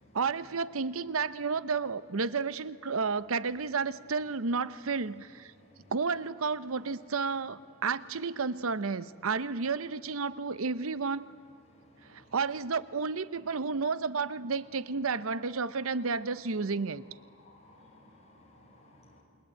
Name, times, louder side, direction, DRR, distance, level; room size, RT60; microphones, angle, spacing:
voice 1, 0.1-5.5 5.9-11.2 12.1-17.0, right 4 dB, 80° right, 16 dB, 0.8 m, -31 dB
voice 2, 17.4-19.2, left 1 dB, 30° left, -1 dB, 6.3 m, -58 dB
28.5 x 22.0 x 9.2 m, 2.2 s
head